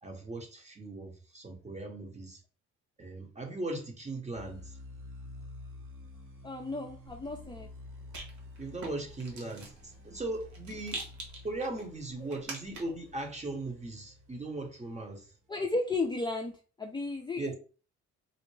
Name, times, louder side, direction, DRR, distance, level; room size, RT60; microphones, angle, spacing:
voice 1, 0.0-2.4 3.0-4.8 8.6-11.0 11.4-15.3 17.4-17.5, right 2 dB, 25° right, 3 dB, 1.1 m, -38 dB
sound 1, 4.3-14.9, left 2 dB, 45° right, 1.2 m, -50 dB
voice 2, 6.4-7.7 15.5-17.5, left 3 dB, 15° left, 1 dB, 0.5 m, -34 dB
Rattle, 7.0-13.1, right 2 dB, 75° right, 1.3 m, -46 dB
4.2 x 2.0 x 3.2 m, 0.37 s
cardioid pair, 90°, 30 cm